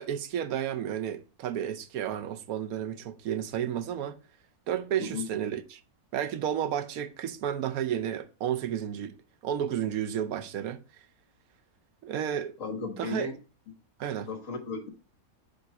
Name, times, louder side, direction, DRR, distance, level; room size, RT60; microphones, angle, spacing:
voice 1, 0.0-4.2 4.7-5.8 6.1-9.1 9.4-10.8 12.0-12.5 13.0-13.3 14.0-14.3, right 9 dB, 80° right, 1.1 m, -32 dB
voice 2, 12.6-13.3 14.2-14.9, left 4 dB, 60° left, 1.7 m, -35 dB
5.3 x 3.9 x 5.8 m
omnidirectional pair, 1.5 m